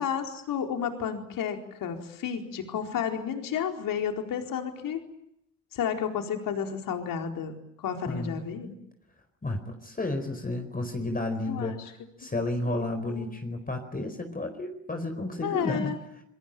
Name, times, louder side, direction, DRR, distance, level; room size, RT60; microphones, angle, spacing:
voice 1, 0.0-5.0 5.7-8.7 11.5-11.8 12.7-13.3 15.4-16.0, left 8 dB, 60° left, 4 dB, 4.4 m, -32 dB
voice 2, 8.1-8.4 9.4-15.9, left 2 dB, 25° left, 6 dB, 4.5 m, -32 dB
27.0 x 23.5 x 9.0 m, 0.78 s
hypercardioid pair, 50°, 37 cm